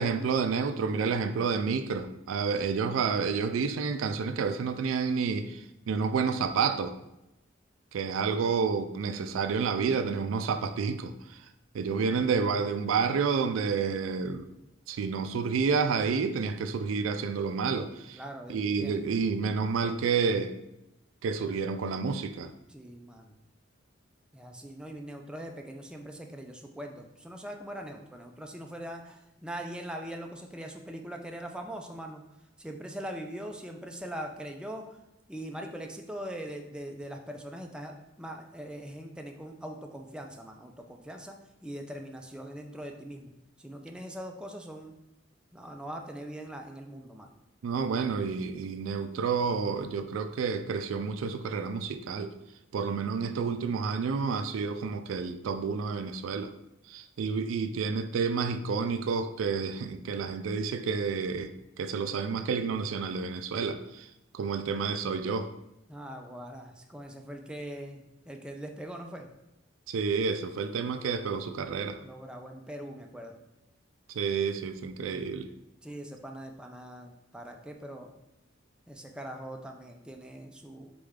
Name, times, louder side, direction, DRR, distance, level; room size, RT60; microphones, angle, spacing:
voice 1, 0.0-7.0 7.9-11.1 11.7-14.5 14.9-18.2 18.5-20.6 21.2-22.5 47.6-52.3 52.7-56.5 56.9-64.1 64.3-65.5 69.9-72.0 74.1-75.5, right 5 dB, 85° right, 10 dB, 0.3 m, -29 dB
voice 2, 18.1-19.1 22.7-23.3 24.3-32.2 32.6-34.8 35.3-43.3 43.6-45.0 45.5-47.3 65.9-69.3 72.0-73.4 75.0-75.4 75.8-78.1 78.9-80.9, right 1 dB, 5° right, 2 dB, 0.4 m, -41 dB
4.2 x 3.3 x 3.6 m, 0.90 s
head